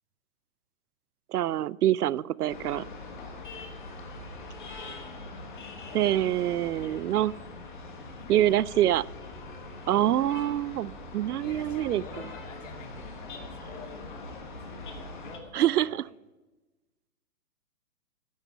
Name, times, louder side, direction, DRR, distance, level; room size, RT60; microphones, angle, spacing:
voice 1, 1.3-2.8 5.9-7.3 8.3-9.0 9.9-12.0 15.5-15.9, right 12 dB, 90° right, 22 dB, 0.6 m, -25 dB
sound 1, 2.5-15.4, left 2 dB, 35° left, 1.3 m, -42 dB
voice 2, 5.6-6.0 6.8-7.5 8.2-9.1 11.4-16.0, left 5 dB, 55° left, 2 dB, 2.3 m, -49 dB
10.5 x 7.2 x 9.1 m, 1.1 s
hypercardioid pair, 180°, 44 cm